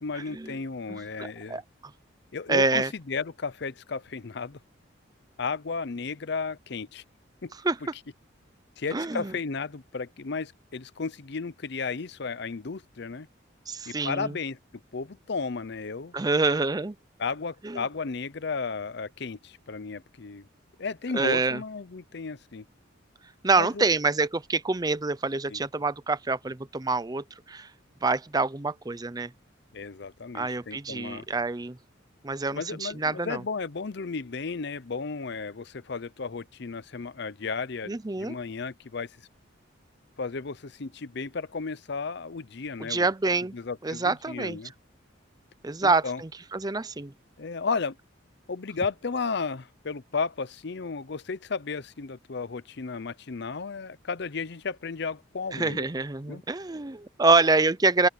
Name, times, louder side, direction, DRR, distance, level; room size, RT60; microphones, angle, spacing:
voice 1, 0.0-1.6 2.3-4.6 5.4-7.0 7.4-7.5 8.8-13.3 13.9-14.6 14.9-16.1 17.2-20.5 20.8-22.7 23.5-23.9 25.5-25.6 29.7-31.3 32.5-39.2 40.2-43.1 43.5-44.7 45.8-46.2 47.4-48.0 48.5-55.8 56.3-56.4, left 4 dB, 60° left, 0.7 m, -34 dB
voice 2, 0.9-1.6 2.5-2.9 7.6-7.8 8.9-9.3 13.7-14.3 16.1-17.0 17.6-17.8 21.1-21.6 23.4-27.7 28.0-29.3 30.3-31.8 32.2-33.4 37.9-38.4 42.9-43.5 43.8-44.6 45.6-47.1 55.5-58.1, right 3 dB, 20° right, 0.6 m, -26 dB
open air
head